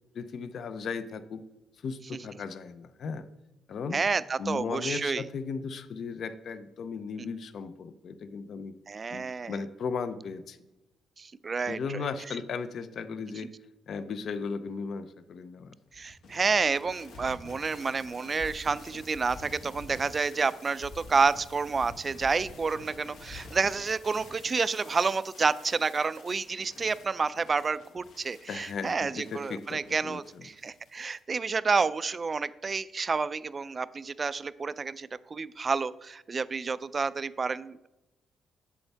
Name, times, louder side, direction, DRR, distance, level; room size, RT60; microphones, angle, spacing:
voice 1, 0.1-1.4 1.8-3.3 3.7-4.0 4.4-8.7 9.1-10.6 11.7-13.5 13.9-15.8 28.5-30.5, left 5 dB, 60° left, 12 dB, 0.5 m, -36 dB
voice 2, 3.9-5.2 7.2-7.3 8.9-9.6 11.2-12.0 15.9-37.9, right 4 dB, 35° right, 16 dB, 0.3 m, -29 dB
sound 1, 15.9-31.2, left 3 dB, 80° left, 1.6 m, -48 dB
8.3 x 7.0 x 3.4 m, 0.98 s
cardioid pair, 90°, 0 cm